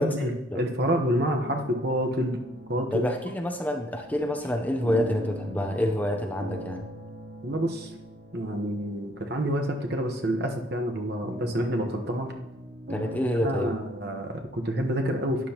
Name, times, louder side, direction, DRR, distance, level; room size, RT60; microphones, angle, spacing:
voice 1, 0.0-2.4 2.7-3.1 7.4-7.9 8.3-12.3 13.4-15.5, equal, 55° right, 3 dB, 1.1 m, -28 dB
sound 1, 1.3-14.3, equal, 75° right, 3.5 m, -41 dB
voice 2, 2.9-6.8 12.9-13.8, left 1 dB, 10° left, 4 dB, 0.7 m, -28 dB
12.0 x 10.0 x 3.0 m, 0.91 s
head